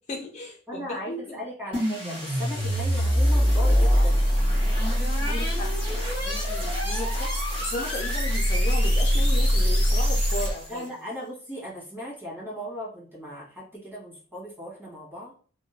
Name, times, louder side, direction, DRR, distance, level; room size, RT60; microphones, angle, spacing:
voice 1, 0.1-1.2 5.3-10.9, left 1 dB, 35° left, 1 dB, 0.3 m, -36 dB
voice 2, 0.7-4.3 10.7-15.3, equal, 10° right, -7 dB, 1.3 m, -37 dB
sound 1, 1.7-10.8, equal, 25° right, 1.2 m, -23 dB
2.8 x 2.1 x 2.7 m, 0.42 s
head